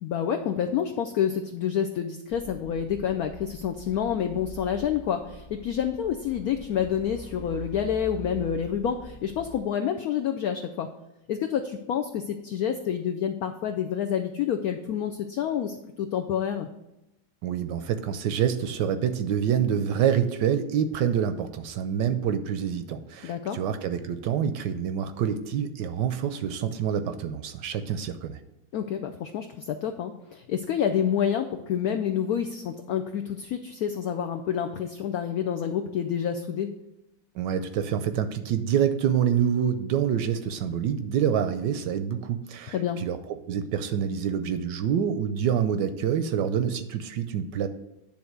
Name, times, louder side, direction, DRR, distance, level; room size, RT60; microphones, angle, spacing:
voice 1, 0.0-10.9 11.3-16.7 23.2-23.6 28.7-36.8 42.7-43.0, left 8 dB, 80° left, 6 dB, 0.8 m, -28 dB
sound 1, 2.3-9.6, right 1 dB, 40° left, 1.9 m, -44 dB
voice 2, 17.4-28.4 37.3-47.7, right 8 dB, 75° right, 9 dB, 1.1 m, -27 dB
10.0 x 3.5 x 6.6 m, 0.91 s
omnidirectional pair, 2.1 m